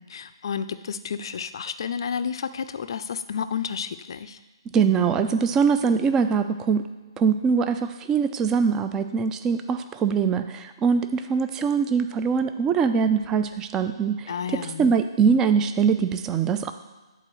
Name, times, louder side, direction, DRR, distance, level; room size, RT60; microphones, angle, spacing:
voice 1, 0.1-4.4 14.3-14.9, left 7 dB, 60° left, 11 dB, 0.4 m, -31 dB
voice 2, 4.7-6.8 7.2-14.3 14.8-16.7, right 6 dB, 15° right, 8 dB, 0.4 m, -22 dB
9.7 x 4.0 x 3.1 m, 1.3 s
figure-of-eight pair, 135°, 3 cm